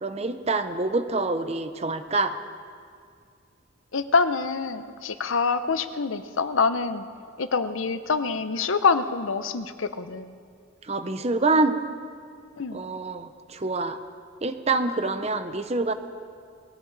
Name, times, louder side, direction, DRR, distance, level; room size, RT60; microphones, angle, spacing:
voice 1, 0.0-2.4 10.8-11.8 12.7-14.0 14.4-15.9, right 3 dB, 30° right, 9 dB, 0.7 m, -26 dB
voice 2, 3.9-7.1 7.4-10.4 12.6-12.8, left 4 dB, 80° left, 12 dB, 0.7 m, -25 dB
20.5 x 16.0 x 4.0 m, 2.3 s
head